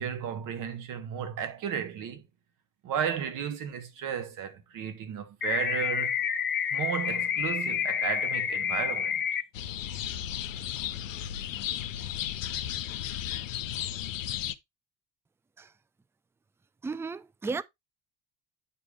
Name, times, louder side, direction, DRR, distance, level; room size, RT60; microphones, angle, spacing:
voice 1, 0.0-2.2 2.8-6.2 6.7-9.2, right 8 dB, 55° right, 1.6 m, -33 dB
sound 1, 5.4-9.4, left 8 dB, 30° left, 0.8 m, -29 dB
sound 2, 9.5-14.5, left 11 dB, 80° left, 0.6 m, -34 dB
voice 2, 16.8-17.6, right 4 dB, 5° right, 0.4 m, -34 dB
9.1 x 4.9 x 3.3 m
figure-of-eight pair, 60°, 38 cm